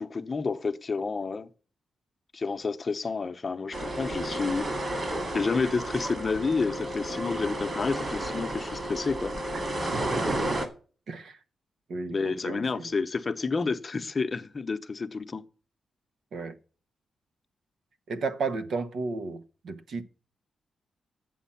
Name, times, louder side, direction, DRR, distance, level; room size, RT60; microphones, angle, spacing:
voice 1, 0.0-1.5 2.3-4.7 5.3-9.3 12.1-15.4, left 4 dB, 35° left, 0.9 m, -30 dB
sound 1, 3.7-10.7, right 1 dB, 35° right, 2.3 m, -32 dB
voice 2, 9.9-10.3 11.1-11.4 11.9-12.9 16.3-16.6 18.1-20.0, right 4 dB, 70° right, 1.2 m, -34 dB
9.3 x 7.4 x 5.7 m
cardioid pair, 110°, 0 cm